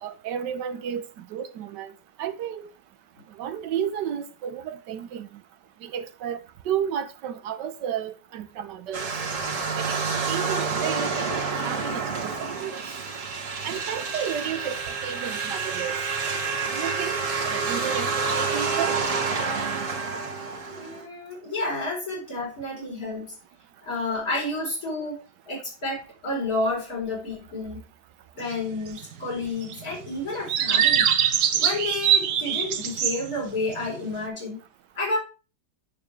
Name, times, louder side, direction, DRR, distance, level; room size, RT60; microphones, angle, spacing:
voice 1, 0.0-1.0 1.3-1.9 2.2-2.7 3.4-5.3 5.8-6.4 6.7-9.1 9.8-10.0 10.3-11.1 11.5-12.8 13.6-14.8 15.0-16.0 16.6-17.2 17.5-19.0, right 9 dB, 85° right, 1.5 m, -32 dB
sound 1, 8.9-21.0, right 4 dB, 50° right, 1.9 m, -28 dB
voice 2, 20.7-23.3 23.8-27.8 28.4-31.1 31.5-34.6 35.0-35.2, left 2 dB, 55° left, 4.8 m, -30 dB
sound 2, 28.5-28.6 28.9-29.0 29.7-30.0 30.5-33.3 33.7-34.0, right 9 dB, 70° right, 1.4 m, -23 dB
8.7 x 6.8 x 3.4 m
omnidirectional pair, 1.8 m